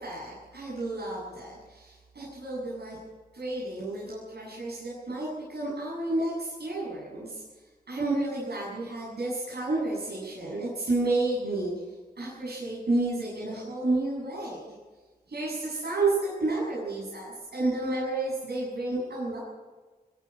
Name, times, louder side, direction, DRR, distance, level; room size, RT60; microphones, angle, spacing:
voice 1, 0.0-3.0 3.3-7.4 7.9-11.7 12.2-14.6 15.3-19.4, right 2 dB, 80° right, -6 dB, 7.9 m, -31 dB
22.5 x 13.5 x 8.9 m, 1.3 s
wide cardioid pair, 65°, 16 cm